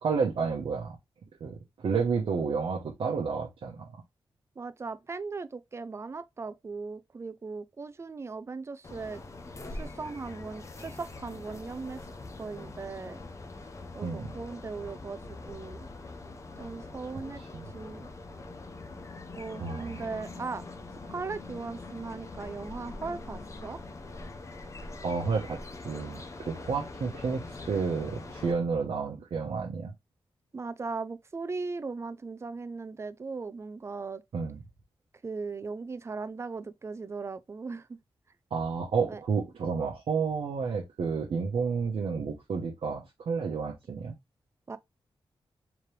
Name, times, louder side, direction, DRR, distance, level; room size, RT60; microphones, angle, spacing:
voice 1, 0.0-1.0 1.4-3.9 14.0-14.3 17.4-17.7 19.6-19.9 25.0-29.9 34.3-34.6 38.5-44.1, right 5 dB, 85° right, 0.9 m, -31 dB
voice 2, 4.6-9.2 9.7-12.0 12.4-13.2 13.9-15.9 16.6-17.4 17.7-18.1 19.4-20.6 21.1-23.8 30.5-34.2 35.2-38.0 39.0-39.2 44.7-44.8, right 4 dB, 30° right, 0.4 m, -38 dB
sound 1, 8.8-28.5, left 2 dB, 30° left, 0.6 m, -43 dB
3.6 x 3.2 x 3.2 m
wide cardioid pair, 130°, 9 cm